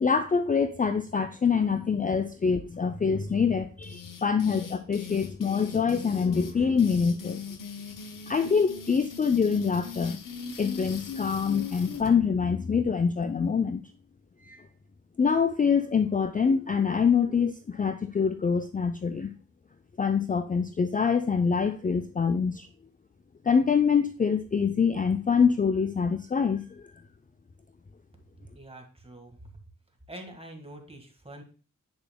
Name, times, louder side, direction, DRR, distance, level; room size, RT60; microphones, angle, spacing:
voice 1, 0.0-7.4 8.3-10.2 10.6-13.8 14.5-14.6 15.2-19.3 20.0-22.7 23.5-26.6, left 6 dB, 25° left, 9 dB, 0.4 m, -25 dB
sound 1, 3.8-12.1, left 5 dB, 80° left, 0.8 m, -40 dB
voice 2, 28.5-29.6 30.1-31.4, right 1 dB, 20° right, 3 dB, 1.7 m, -45 dB
8.0 x 6.7 x 2.2 m, 0.37 s
wide cardioid pair, 65°, 32 cm